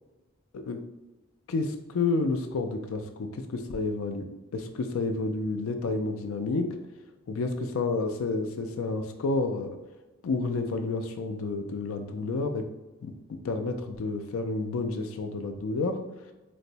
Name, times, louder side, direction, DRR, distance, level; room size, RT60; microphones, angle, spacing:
voice 1, 1.5-6.8 7.3-9.8 10.2-12.7 13.0-16.0, left 3 dB, 85° left, 6 dB, 0.4 m, -30 dB
4.1 x 2.0 x 2.6 m, 1.1 s
head